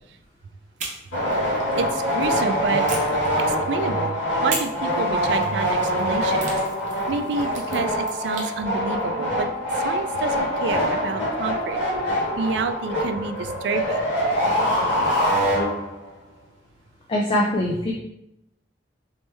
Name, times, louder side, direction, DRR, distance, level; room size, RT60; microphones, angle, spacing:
sound 1, 0.8-2.3 2.9-3.9 4.5-8.6, right 4 dB, 45° right, 0.7 m, -37 dB
sound 2, 1.1-16.1, equal, 85° left, 1.5 m, -24 dB
voice 1, 1.8-3.0 3.5-4.2 4.4-6.5 7.1-9.5 9.8-11.8 12.4-14.0, right 4 dB, 70° right, 8 dB, 0.3 m, -28 dB
voice 2, 17.1-17.9, left 1 dB, 30° left, -1 dB, 0.4 m, -22 dB
3.1 x 3.1 x 3.3 m, 0.82 s
head